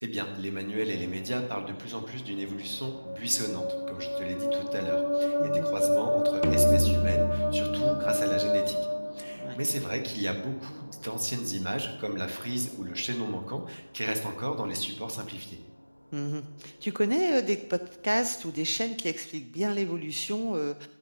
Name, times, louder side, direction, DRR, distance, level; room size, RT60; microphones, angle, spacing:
voice 1, 0.0-8.8 9.1-15.6, right 1 dB, 25° right, 4 dB, 0.9 m, -34 dB
sound 1, 0.7-18.9, equal, 15° left, 2.6 m, -49 dB
sound 2, 2.9-9.8, left 1 dB, 45° left, 0.6 m, -28 dB
sound 3, 6.4-9.9, equal, 80° right, 0.9 m, -30 dB
voice 2, 16.1-20.9, equal, 55° right, 11 dB, 0.4 m, -30 dB
13.0 x 4.4 x 6.6 m, 0.95 s
figure-of-eight pair, 180°, 0 cm